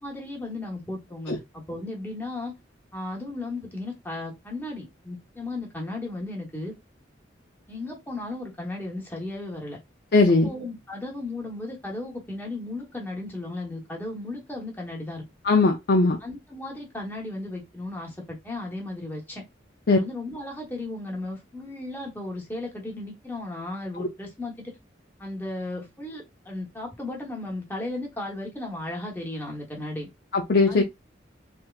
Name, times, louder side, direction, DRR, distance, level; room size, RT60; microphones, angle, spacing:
voice 1, 0.0-2.5 2.9-6.7 7.7-9.8 10.4-15.2 16.2-19.4 19.9-24.7 25.2-30.1 30.7-30.8, left 2 dB, 10° left, 1.0 m, -35 dB
voice 2, 10.1-10.5 15.4-16.2 19.9-20.0 24.0-24.1 30.3-30.8, left 3 dB, 55° left, 0.5 m, -19 dB
3.4 x 2.9 x 2.4 m
head